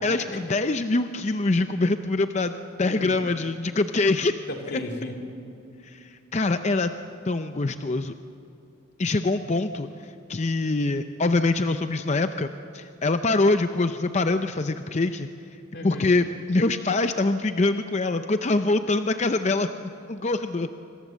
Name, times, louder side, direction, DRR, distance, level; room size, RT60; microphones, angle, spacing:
voice 1, 0.0-4.3 5.9-6.9 7.3-8.1 9.0-9.9 10.3-12.5 12.7-15.3 15.8-20.7, left 2 dB, 35° left, 9 dB, 0.6 m, -24 dB
voice 2, 2.8-3.2 4.5-5.2 15.7-16.1, left 1 dB, 55° left, 3 dB, 3.1 m, -35 dB
26.0 x 25.0 x 7.5 m, 2.6 s
head